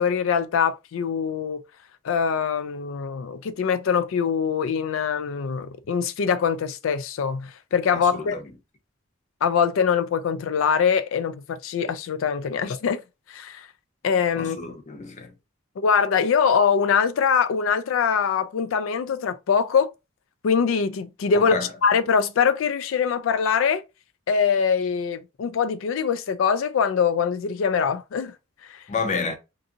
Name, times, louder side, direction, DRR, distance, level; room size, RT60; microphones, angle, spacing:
voice 1, 0.0-1.6 2.0-8.4 9.4-13.0 13.3-13.7 14.0-14.6 15.8-19.9 20.4-21.5 21.8-23.8 24.3-28.4 28.7-28.8, left 6 dB, 85° left, 0.4 m, -23 dB
voice 2, 7.9-8.5 14.4-15.3 21.3-21.7 28.9-29.4, left 4 dB, 40° left, 0.6 m, -30 dB
2.7 x 2.6 x 2.4 m
head